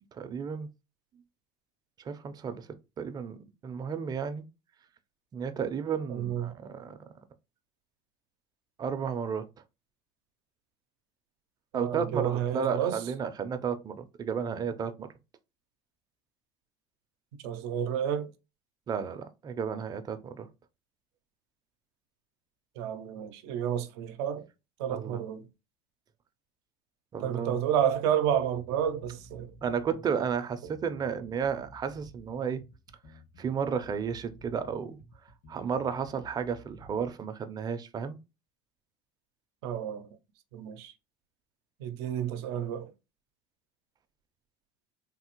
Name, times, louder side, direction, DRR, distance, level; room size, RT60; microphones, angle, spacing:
voice 1, 0.1-0.7 2.0-2.7 3.0-4.4 5.3-7.0 8.8-9.5 11.7-15.1 18.9-20.5 24.9-25.2 27.1-27.6 29.6-32.6 33.4-35.0 35.5-38.2, right 7 dB, 30° right, 0.5 m, -33 dB
voice 2, 6.1-6.5 11.7-13.0 17.4-18.3 22.8-24.5 24.8-25.5 27.2-29.5 39.6-40.1 40.5-40.9 41.8-42.9, right 9 dB, 85° right, 0.6 m, -30 dB
sound 1, 28.5-37.1, right 1 dB, 65° left, 1.4 m, -53 dB
3.3 x 2.0 x 2.9 m
supercardioid pair, 115°, 13 cm